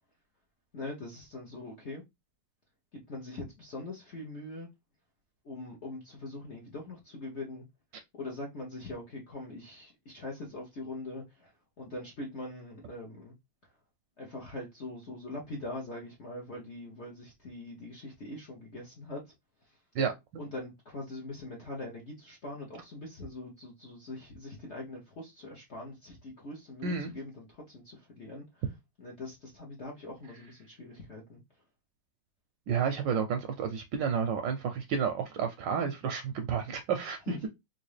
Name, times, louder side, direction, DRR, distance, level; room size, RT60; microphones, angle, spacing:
voice 1, 0.7-2.0 2.9-4.7 5.4-7.6 8.1-11.5 11.8-13.3 14.2-19.3 19.6-19.8 20.4-28.6 29.0-31.4 37.3-37.5, left 2 dB, 60° left, 0.7 m, -42 dB
voice 2, 19.9-20.4 26.8-27.1 32.7-37.5, right 6 dB, 75° right, 1.1 m, -31 dB
3.6 x 2.6 x 3.2 m
omnidirectional pair, 2.3 m